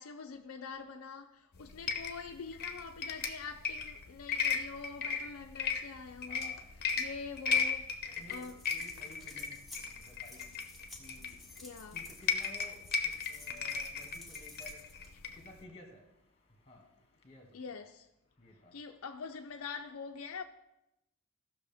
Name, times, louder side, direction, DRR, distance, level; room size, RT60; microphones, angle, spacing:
voice 1, 0.0-8.7 11.6-12.0 13.5-13.6 17.5-18.1 18.7-20.4, left 5 dB, 65° left, 0.5 m, -45 dB
sound 1, 1.5-15.6, left 5 dB, 45° left, 0.8 m, -36 dB
voice 2, 6.3-6.7 8.2-8.5 8.7-11.6 11.9-17.6 18.4-18.8, left 1 dB, 25° left, 1.7 m, -55 dB
sound 2, 8.2-15.1, left 2 dB, ahead, 1.3 m, -54 dB
16.0 x 6.2 x 3.5 m
head